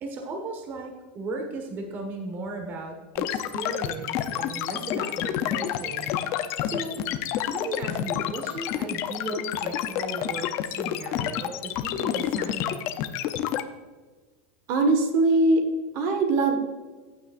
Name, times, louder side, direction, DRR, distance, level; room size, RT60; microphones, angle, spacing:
voice 1, 0.0-6.2 6.6-7.0 7.5-12.8, right 2 dB, 35° right, 3 dB, 1.4 m, -36 dB
sound 1, 3.2-13.6, left 11 dB, 45° left, 0.7 m, -29 dB
voice 2, 14.7-15.6 15.9-16.6, right 2 dB, 50° right, 5 dB, 1.5 m, -21 dB
15.0 x 7.1 x 2.5 m, 1.3 s
supercardioid pair, 140°, 6 cm